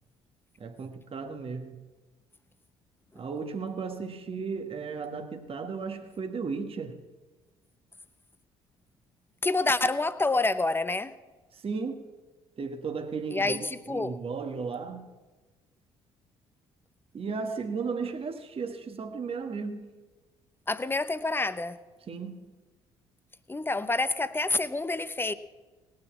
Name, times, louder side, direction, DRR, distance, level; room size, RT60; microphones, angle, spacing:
voice 1, 0.6-1.8 3.1-7.0 11.5-12.1 12.6-15.1 17.1-19.8 22.1-22.4, right 5 dB, 40° right, 1.5 m, -35 dB
voice 2, 9.4-11.1 13.3-14.2 20.7-21.8 23.5-25.3, left 3 dB, 15° left, 0.9 m, -28 dB
18.0 x 6.5 x 8.5 m
hypercardioid pair, 55°, 14 cm